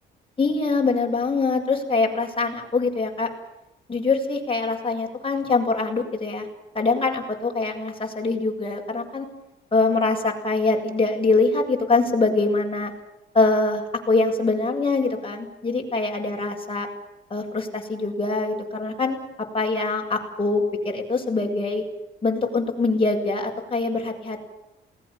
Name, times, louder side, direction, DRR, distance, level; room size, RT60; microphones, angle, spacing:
voice 1, 0.4-3.3 3.9-6.5 6.7-9.3 9.7-12.9 13.3-16.9 17.3-19.2 19.5-21.8 22.2-24.4, left 3 dB, 25° left, 1 dB, 8.0 m, -23 dB
28.0 x 20.5 x 7.4 m, 0.91 s
cardioid pair, 90°, 20 cm